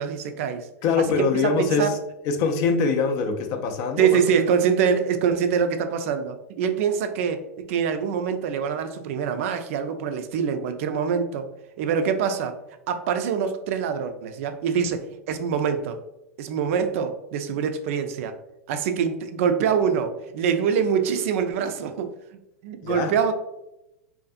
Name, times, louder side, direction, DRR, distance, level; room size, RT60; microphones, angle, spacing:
voice 1, 0.0-0.7 1.0-2.0 4.0-11.5 11.8-12.6 12.9-16.0 16.4-18.3 18.7-22.1 22.6-23.3, right 7 dB, 60° right, 8 dB, 0.3 m, -24 dB
voice 2, 0.8-2.0 2.2-4.2 22.8-23.1, left 4 dB, 45° left, 6 dB, 0.3 m, -23 dB
2.5 x 2.4 x 2.4 m, 0.88 s
hypercardioid pair, 110°, 8 cm